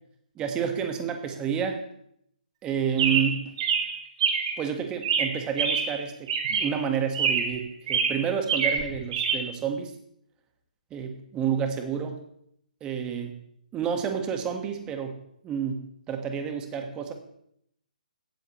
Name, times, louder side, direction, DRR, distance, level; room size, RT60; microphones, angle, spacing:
voice 1, 0.3-1.8 2.6-3.6 4.6-9.9 10.9-12.2 12.8-13.4 13.7-17.1, right 7 dB, 20° right, 5 dB, 1.7 m, -30 dB
Chirp tweet, 3.0-4.6 5.0-6.0 6.3-6.8 7.1-7.6 7.9-9.4, right 6 dB, 40° right, 2.3 m, -26 dB
16.5 x 13.0 x 3.2 m, 0.73 s
figure-of-eight pair, 135°, 5 cm